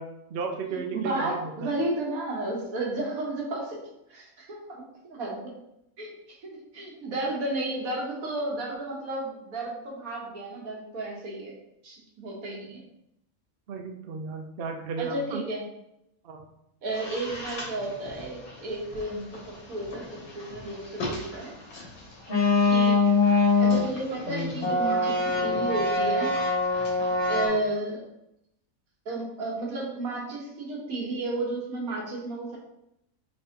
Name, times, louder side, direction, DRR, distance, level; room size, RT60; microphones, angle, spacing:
voice 1, 0.0-1.7 13.7-15.4 16.2-16.4 27.4-27.6, right 5 dB, 60° right, 3 dB, 0.7 m, -34 dB
voice 2, 0.7-3.8 4.1-5.5 6.0-6.1 6.4-11.5 11.8-12.8 15.0-15.6 16.8-20.1 20.3-21.5 22.7-23.0 23.6-26.3 27.3-28.0 29.0-32.6, right 2 dB, 80° right, -2 dB, 1.5 m, -32 dB
sound 1, 16.9-18.6 18.9-27.5, left 3 dB, 85° left, 1.6 m, -25 dB
5.4 x 3.3 x 2.9 m, 0.81 s
omnidirectional pair, 1.5 m